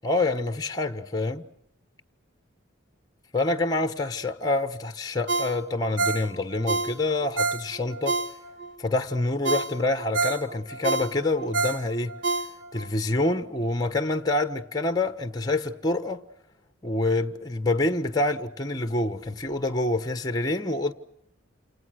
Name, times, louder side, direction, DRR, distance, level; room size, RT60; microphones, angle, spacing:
voice 1, 0.0-1.5 3.3-8.2 8.8-12.2 12.7-16.2 16.8-20.9, left 2 dB, 20° left, 1.2 m, -26 dB
Ringtone, 5.3-8.7 9.1-9.2 9.5-12.9 13.3-13.4, right 3 dB, 65° right, 1.7 m, -28 dB
28.5 x 28.5 x 6.4 m
head